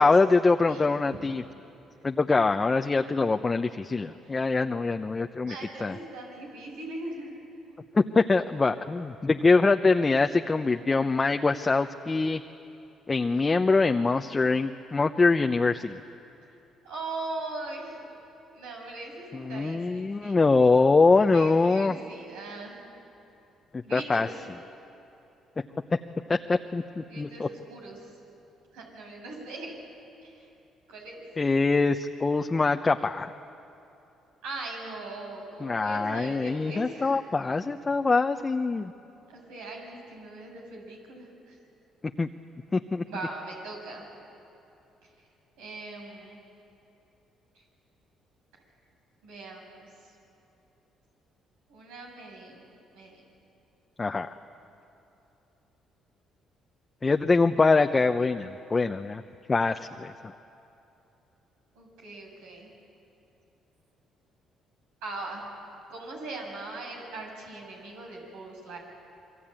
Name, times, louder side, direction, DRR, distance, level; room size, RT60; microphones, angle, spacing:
voice 1, 0.0-1.4 2.0-5.5 5.8-6.0 7.9-12.4 13.1-16.0 19.3-22.0 23.7-24.3 25.9-26.0 26.3-27.5 31.4-33.3 35.6-38.9 42.2-42.3 42.7-43.0 54.0-54.3 57.0-59.2 59.5-60.1, left 3 dB, 30° left, 5 dB, 0.9 m, -24 dB
voice 2, 5.5-7.3 16.8-18.1 18.5-20.4 21.3-22.8 23.8-24.3 27.1-28.0 28.7-29.7 30.2-30.5 30.9-31.2 34.4-37.2 39.3-41.6 43.1-44.1 45.0-45.1 45.6-46.4 49.2-49.9 51.7-52.7 52.9-53.2 61.8-62.7 65.0-65.4 65.9-68.8, right 2 dB, 90° right, -1 dB, 7.1 m, -40 dB
27.5 x 23.0 x 9.0 m, 2.9 s
supercardioid pair, 70°, 0 cm